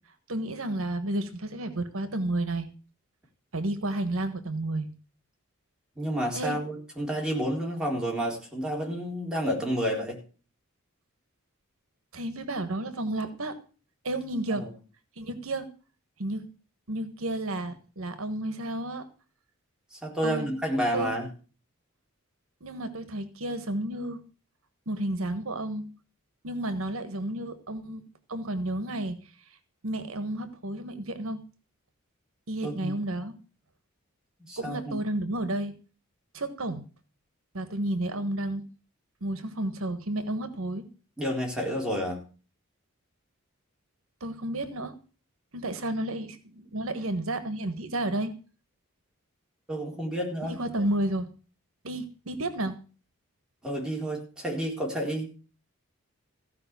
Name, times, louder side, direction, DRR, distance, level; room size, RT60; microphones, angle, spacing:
voice 1, 0.3-2.7 3.5-4.9 6.3-6.6 12.1-13.6 14.0-14.6 15.2-15.7 16.2-16.5 16.9-19.1 20.2-20.5 20.9-21.1 22.6-24.2 24.9-25.9 26.4-28.0 28.3-29.2 29.8-31.4 32.5-33.3 34.6-35.7 36.3-36.8 37.5-38.6 39.2-40.8 44.2-44.9 45.5-48.3 50.4-51.3 51.8-52.8, right 1 dB, 70° right, 10 dB, 1.4 m, -31 dB
voice 2, 6.0-10.2 14.5-14.7 19.9-21.3 32.6-33.0 34.5-35.0 41.2-42.2 49.7-50.5 53.6-55.3, equal, 5° right, -2 dB, 4.0 m, -30 dB
15.5 x 5.4 x 8.2 m, 0.37 s
head